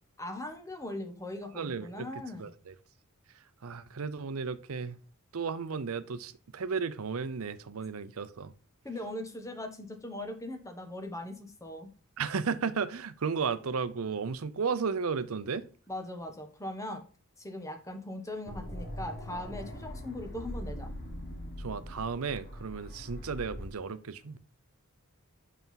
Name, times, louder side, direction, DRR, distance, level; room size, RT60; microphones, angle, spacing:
voice 1, 0.2-2.5 8.8-11.9 15.9-17.0 17.4-20.9, left 1 dB, 15° left, 1.1 m, -40 dB
voice 2, 1.5-2.1 2.4-2.7 3.6-5.0 5.3-8.5 12.2-15.6 21.6-24.4, right 5 dB, 80° right, 0.6 m, -34 dB
sound 1, 18.5-23.7, equal, 45° left, 2.2 m, -41 dB
6.0 x 5.6 x 5.7 m
head